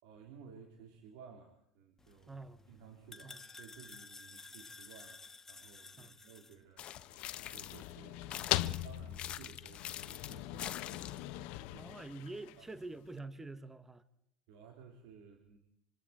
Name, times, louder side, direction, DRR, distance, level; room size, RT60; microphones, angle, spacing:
voice 1, 0.0-2.3 2.7-5.2 5.5-11.9 12.6-12.7 14.5-15.6, right 6 dB, 75° right, 3.5 m, -56 dB
sound 1, 2.0-6.6, left 3 dB, 20° left, 1.9 m, -53 dB
voice 2, 2.3-2.7 3.2-3.4 6.0-6.2 11.8-14.0, right 2 dB, 15° right, 1.5 m, -46 dB
sound 2, 6.8-12.9, left 16 dB, 70° left, 0.9 m, -40 dB
sound 3, 6.8-7.9 8.3-11.3, left 11 dB, 50° left, 1.2 m, -45 dB
26.0 x 26.0 x 4.4 m
hypercardioid pair, 75°, 2 cm